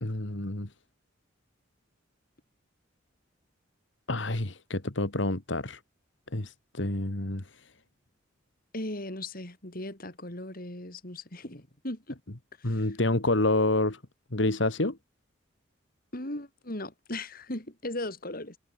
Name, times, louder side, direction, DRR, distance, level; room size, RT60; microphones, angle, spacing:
voice 1, 0.0-0.7 4.1-5.8 6.3-7.7 12.6-14.0 14.3-15.0, left 2 dB, 65° left, 2.1 m, -28 dB
voice 2, 8.7-12.2 12.6-12.9 16.1-18.6, left 1 dB, 45° left, 4.4 m, -38 dB
head